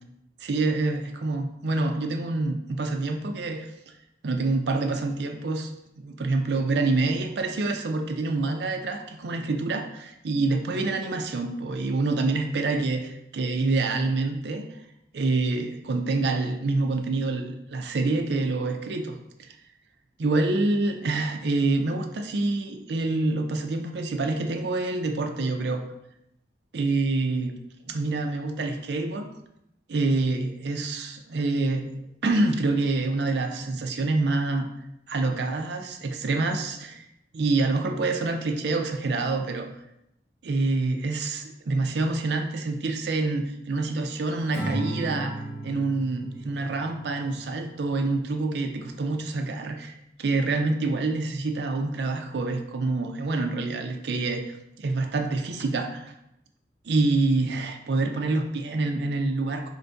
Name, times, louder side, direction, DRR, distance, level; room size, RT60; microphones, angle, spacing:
voice 1, 0.4-3.7 4.2-5.7 6.0-14.6 15.1-19.2 20.2-25.8 26.7-27.5 27.9-29.3 29.9-34.7 35.1-37.1 37.3-39.7 40.4-45.4 45.6-56.1 56.8-59.7, right 3 dB, 75° right, 5 dB, 0.4 m, -26 dB
Acoustic guitar / Strum, 44.5-47.9, right 1 dB, 80° left, 1.3 m, -35 dB
4.4 x 2.6 x 3.4 m, 0.81 s
head